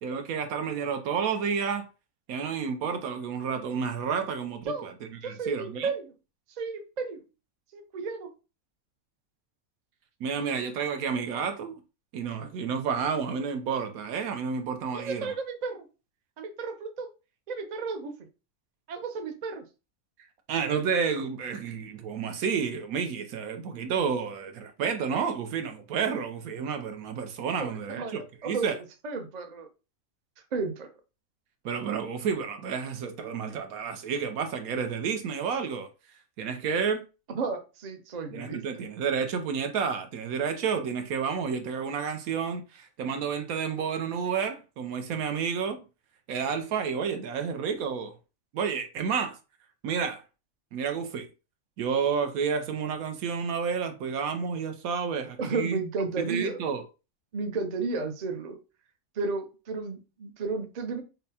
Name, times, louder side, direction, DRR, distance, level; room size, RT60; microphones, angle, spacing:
voice 1, 0.0-1.9 2.3-5.9 10.2-11.8 12.1-15.3 20.5-28.8 31.6-35.9 36.4-37.0 38.3-45.8 46.3-48.1 48.5-49.4 49.8-50.2 50.7-51.3 51.8-55.8 56.2-56.8, right 6 dB, 75° right, 1.1 m, -30 dB
voice 2, 5.2-6.1 6.6-7.2 7.7-8.3 14.9-15.9 16.4-17.1 17.5-18.2 18.9-19.6 27.6-28.7 29.0-29.7 30.5-30.9 37.3-38.6 55.4-56.6 57.3-58.6 59.2-61.0, right 4 dB, 50° right, 0.5 m, -33 dB
5.6 x 2.1 x 2.7 m
omnidirectional pair, 1.5 m